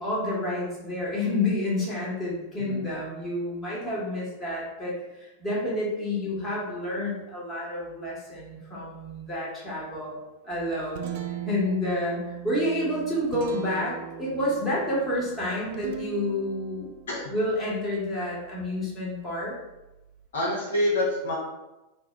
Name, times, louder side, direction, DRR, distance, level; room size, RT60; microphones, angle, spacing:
voice 1, 0.0-10.1 10.4-16.9 17.3-19.5, left 1 dB, 15° left, -7 dB, 1.3 m, -29 dB
Guitar, 10.5-20.3, right 11 dB, 50° right, 0.3 m, -40 dB
voice 2, 20.3-21.4, left 1 dB, 65° left, -4 dB, 0.9 m, -27 dB
3.3 x 2.1 x 3.6 m, 1.0 s
figure-of-eight pair, 90°, 0 cm